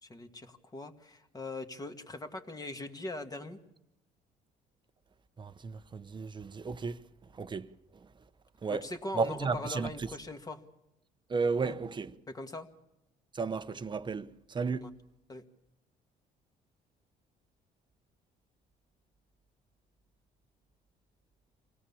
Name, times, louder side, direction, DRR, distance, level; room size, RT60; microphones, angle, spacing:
voice 1, 0.0-3.6 8.7-10.6 11.6-11.7 12.3-12.7 14.8-14.9 15.3-15.4, left 2 dB, 20° left, 2.0 m, -41 dB
voice 2, 5.4-7.0 7.3-7.7 8.6-8.9 9.1-9.9 11.3-12.1 13.3-14.9, right 4 dB, 25° right, 1.0 m, -33 dB
26.0 x 17.5 x 7.1 m
cardioid pair, 110°, 17 cm